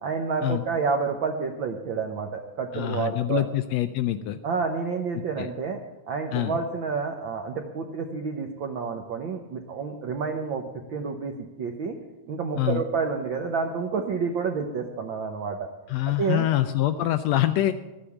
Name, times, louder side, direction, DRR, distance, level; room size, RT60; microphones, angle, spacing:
voice 1, 0.0-3.4 4.4-5.8 6.1-12.0 12.3-15.7 16.1-16.5, right 5 dB, 75° right, 3 dB, 1.1 m, -29 dB
voice 2, 2.7-4.4 5.2-5.5 6.3-6.6 12.6-12.8 15.9-17.7, left 13 dB, 80° left, 10 dB, 1.6 m, -25 dB
13.5 x 8.7 x 7.1 m, 1.1 s
omnidirectional pair, 3.4 m